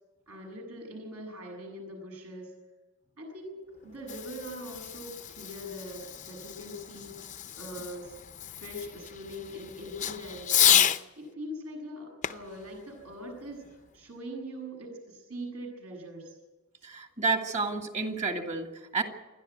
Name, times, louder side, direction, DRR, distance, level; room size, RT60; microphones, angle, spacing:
voice 1, 0.3-2.5 3.2-8.2 8.5-10.9 11.2-16.3, equal, 75° right, 1 dB, 7.5 m, -42 dB
Fireworks, 3.8-11.0 12.2-13.9, left 10 dB, 35° left, 0.6 m, -31 dB
voice 2, 16.8-19.0, right 4 dB, 30° right, 4 dB, 2.2 m, -30 dB
28.0 x 11.0 x 9.4 m, 1.2 s
head